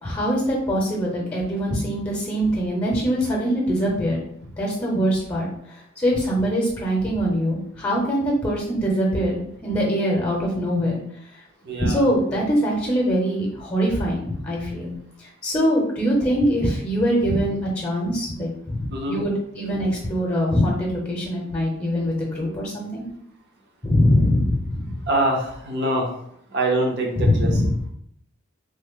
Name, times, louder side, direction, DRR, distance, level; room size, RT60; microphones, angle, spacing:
voice 1, 0.0-4.2 4.6-11.0 11.8-14.9 15.2-23.0 23.8-25.0 27.2-27.9, equal, 15° left, -3 dB, 0.7 m, -23 dB
voice 2, 11.6-12.1 18.9-19.2 19.8-19.9 25.1-26.2 26.5-27.6, right 1 dB, 60° right, 0 dB, 0.8 m, -24 dB
3.3 x 2.1 x 3.5 m, 0.71 s
head